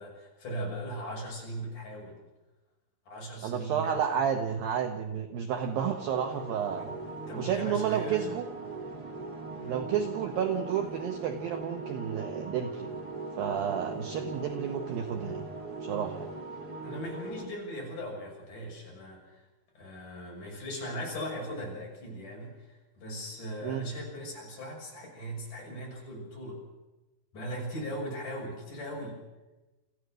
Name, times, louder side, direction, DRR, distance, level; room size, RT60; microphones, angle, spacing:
voice 1, 0.0-2.2 3.1-4.0 6.8-8.3 9.6-9.9 16.8-19.4 19.8-26.6 27.3-29.2, equal, 40° left, -2 dB, 7.4 m, -39 dB
voice 2, 3.4-6.9 7.4-8.5 9.7-12.9 13.4-15.4 15.8-16.3 23.6-23.8, right 8 dB, 80° right, 6 dB, 2.0 m, -31 dB
sound 1, 5.5-17.4, right 3 dB, 25° right, 2.8 m, -40 dB
28.5 x 14.5 x 6.5 m, 1.1 s
omnidirectional pair, 5.7 m